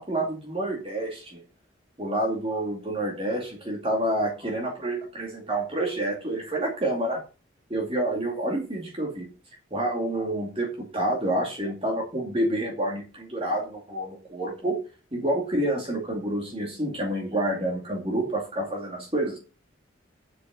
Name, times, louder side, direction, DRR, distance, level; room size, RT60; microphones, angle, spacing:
voice 1, 0.0-1.4 2.0-7.2 7.7-9.3 9.7-19.4, right 1 dB, 30° right, 0 dB, 2.4 m, -28 dB
7.8 x 6.6 x 7.6 m, 0.33 s
head